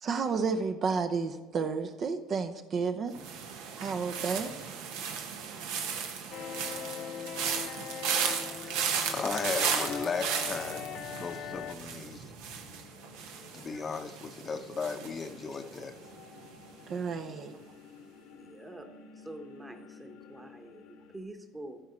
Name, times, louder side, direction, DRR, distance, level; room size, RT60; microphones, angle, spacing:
voice 1, 0.0-3.1 3.8-4.5 16.9-17.6, right 5 dB, 45° right, 8 dB, 0.6 m, -31 dB
sound 1, 3.1-16.2 16.4-16.9, right 6 dB, 80° right, 1.0 m, -35 dB
sound 2, 6.3-11.8, left 9 dB, 55° left, 0.4 m, -40 dB
voice 2, 8.1-12.3 13.5-15.9, left 5 dB, 30° left, 7 dB, 0.7 m, -36 dB
sound 3, 8.6-21.2, left 5 dB, 85° left, 1.4 m, -55 dB
voice 3, 18.4-21.8, right 1 dB, 15° right, 7 dB, 1.1 m, -46 dB
13.5 x 4.8 x 4.4 m, 1.2 s
supercardioid pair, 90°, 0 cm